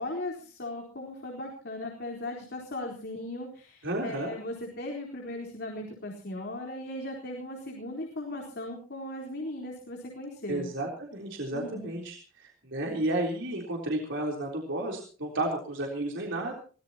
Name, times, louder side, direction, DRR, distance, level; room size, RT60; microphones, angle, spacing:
voice 1, 0.0-10.7 11.5-11.9, left 1 dB, 55° left, 0 dB, 4.1 m, -38 dB
voice 2, 3.8-4.3 10.5-16.6, right 1 dB, 65° right, 0 dB, 3.8 m, -32 dB
23.0 x 19.0 x 2.9 m, 0.40 s
head